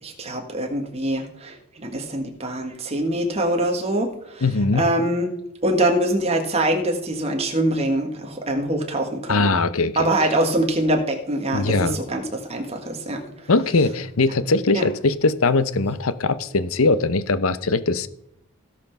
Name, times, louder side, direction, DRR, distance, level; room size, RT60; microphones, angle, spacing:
voice 1, 0.0-4.5 4.7-5.3 5.6-9.5 9.9-13.5 14.7-14.8, right 1 dB, 30° right, 1.6 m, -24 dB
voice 2, 4.4-4.9 9.3-10.1 11.5-12.0 13.5-18.1, left 3 dB, 70° left, 0.8 m, -21 dB
16.5 x 5.8 x 5.9 m
head